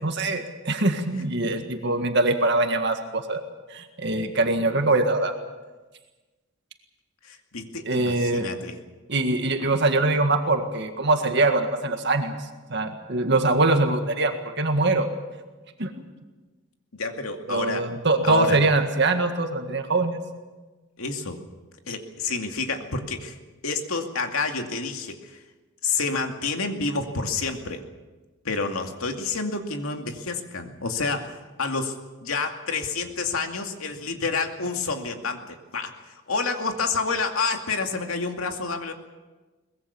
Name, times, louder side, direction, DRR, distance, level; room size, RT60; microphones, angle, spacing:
voice 1, 0.0-3.4 3.7-5.3 7.9-8.5 9.1-12.4 12.7-15.1 15.8-15.9 17.5-20.2, right 2 dB, 55° right, 5 dB, 1.9 m, -23 dB
voice 2, 7.2-8.8 16.9-17.9 18.2-18.6 21.0-21.4 21.9-23.3 23.6-25.4 25.8-27.8 28.4-38.9, left 4 dB, 85° left, 4 dB, 2.4 m, -29 dB
23.0 x 20.5 x 7.1 m, 1.2 s
head